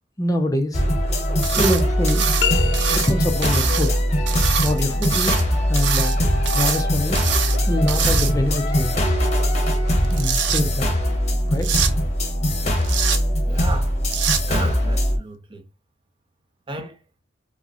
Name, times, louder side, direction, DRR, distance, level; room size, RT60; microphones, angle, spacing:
voice 1, 0.2-0.8 1.4-2.3 2.9-4.0 4.6-6.2 6.5-7.2 7.7-8.9 10.1-10.9 11.5-11.7, left 1 dB, 20° left, 0.5 m, -25 dB
sound 1, 0.7-15.2, equal, 40° left, 1.0 m, -21 dB
sound 2, 1.4-1.8 2.1-3.1 3.4-3.9 4.3-5.4 5.8-6.2 6.5-6.8 7.2-7.6 7.9-8.6 9.9-10.6 11.6-11.9 12.8-13.2 14.1-14.4, right 8 dB, 80° right, 0.6 m, -24 dB
sound 3, 2.4-3.5, left 9 dB, 85° left, 0.5 m, -26 dB
voice 2, 13.5-14.0 14.5-15.6 16.7-17.0, right 2 dB, 30° right, 0.6 m, -33 dB
4.9 x 2.0 x 2.7 m
head